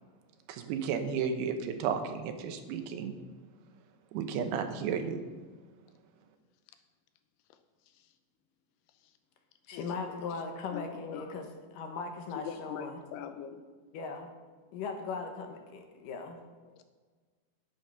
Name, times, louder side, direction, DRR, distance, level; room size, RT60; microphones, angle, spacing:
voice 1, 0.5-3.2 4.1-5.2, right 6 dB, 85° right, 7 dB, 3.0 m, -33 dB
voice 2, 9.7-11.5 11.7-13.0 13.9-14.3 14.7-16.4, left 4 dB, 70° left, 4 dB, 2.4 m, -38 dB
voice 3, 12.4-13.6 16.6-16.8, left 8 dB, 85° left, 9 dB, 2.8 m, -43 dB
10.5 x 8.3 x 5.6 m, 1.4 s
omnidirectional pair, 4.5 m